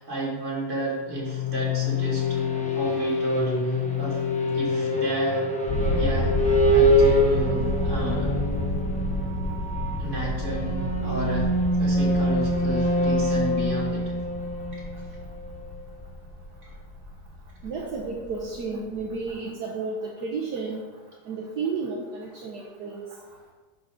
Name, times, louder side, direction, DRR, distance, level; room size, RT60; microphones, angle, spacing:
voice 1, 0.0-4.2 4.5-5.5 5.9-8.4 10.0-11.5 11.8-14.1 14.7-15.1 16.6-16.7, right 1 dB, 45° right, -4 dB, 2.9 m, -32 dB
sound 1, 1.0-15.7, equal, 5° left, 1.0 m, -25 dB
sound 2, 5.7-19.3, left 2 dB, 25° left, 2.8 m, -30 dB
voice 2, 17.6-20.8 21.3-23.0, right 4 dB, 70° right, -1 dB, 1.6 m, -32 dB
11.0 x 4.9 x 5.0 m, 1.3 s
omnidirectional pair, 1.8 m